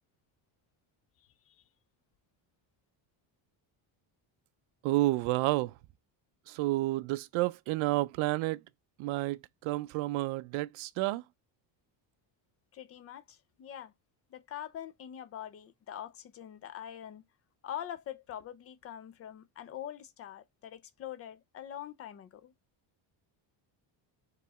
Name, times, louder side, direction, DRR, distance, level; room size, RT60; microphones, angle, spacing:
voice 1, 1.2-1.6 12.7-13.9 14.3-17.2 17.6-22.5, left 10 dB, 30° left, 0.5 m, -44 dB
voice 2, 4.8-5.7 6.5-8.6 9.0-11.2, right 18 dB, 75° right, 0.5 m, -30 dB
4.8 x 3.1 x 3.5 m
cardioid pair, 175°, 49 cm